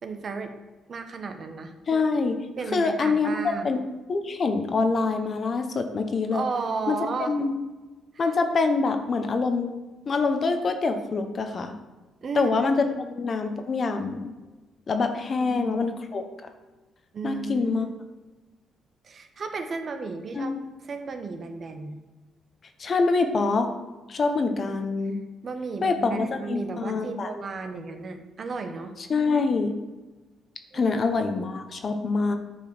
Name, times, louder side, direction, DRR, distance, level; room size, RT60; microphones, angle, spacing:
voice 1, 0.0-0.5 0.9-1.7 2.6-3.7 6.3-7.3 8.1-8.3 12.2-13.0 15.4-15.9 17.1-17.9 19.0-20.5 20.8-22.0 24.5-24.8 25.4-28.9 30.7-30.9, right 4 dB, 50° right, 6 dB, 1.0 m, -34 dB
voice 2, 1.9-2.4 2.7-3.8 4.1-6.4 6.9-7.0 7.3-7.5 8.2-9.7 10.1-11.7 12.3-14.3 14.9-16.2 17.2-17.8 20.3-20.6 22.8-23.7 24.1-25.2 25.8-27.3 29.0-29.8 30.7-32.3, left 4 dB, 45° left, 7 dB, 1.1 m, -25 dB
10.0 x 4.6 x 6.0 m, 1.2 s
cardioid pair, 90°, 0 cm